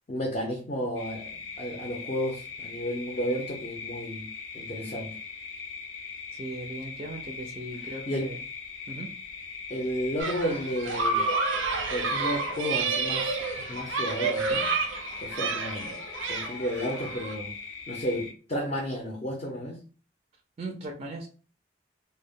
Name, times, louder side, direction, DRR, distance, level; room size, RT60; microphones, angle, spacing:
voice 1, 0.1-1.3 1.6-4.3 4.5-5.1 8.1-8.3 9.7-11.2 11.9-13.4 13.7-14.7 15.2-16.0 16.3-17.6 17.9-19.8, equal, 35° left, 1 dB, 0.5 m, -32 dB
sound 1, 1.0-18.3, left 5 dB, 80° left, 0.6 m, -41 dB
voice 2, 6.3-8.4 8.9-9.1 20.6-21.3, right 2 dB, 35° right, 1 dB, 0.3 m, -38 dB
sound 2, 10.2-17.3, right 4 dB, 90° right, 0.5 m, -30 dB
2.1 x 2.0 x 3.4 m, 0.38 s
head